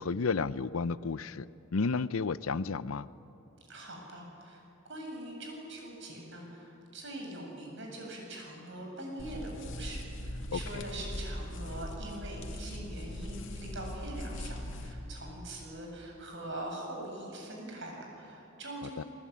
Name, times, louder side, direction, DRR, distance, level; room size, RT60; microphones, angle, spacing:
voice 1, 0.0-3.1 10.5-10.9 18.8-19.0, left 4 dB, 90° left, 0.7 m, -32 dB
voice 2, 3.7-19.1, right 1 dB, 60° right, 7.9 m, -43 dB
sound 1, 9.2-14.9, left 1 dB, 65° left, 2.7 m, -40 dB
28.0 x 21.0 x 9.7 m
head